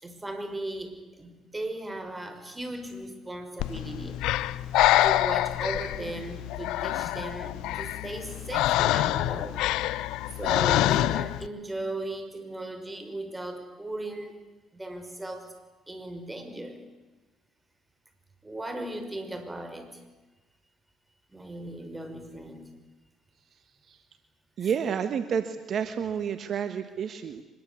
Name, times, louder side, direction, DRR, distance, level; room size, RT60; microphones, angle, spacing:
voice 1, 0.0-4.2 5.0-9.6 10.4-14.3 14.7-15.5 15.9-16.8 18.4-19.9 21.3-22.7 24.6-24.7, right 1 dB, 15° right, 7 dB, 5.7 m, -37 dB
Breathing, 3.6-11.5, left 15 dB, 80° left, 0.7 m, -26 dB
voice 2, 24.6-27.4, right 7 dB, 60° right, 10 dB, 1.4 m, -30 dB
24.5 x 21.5 x 8.5 m, 1.2 s
supercardioid pair, 70°, 0 cm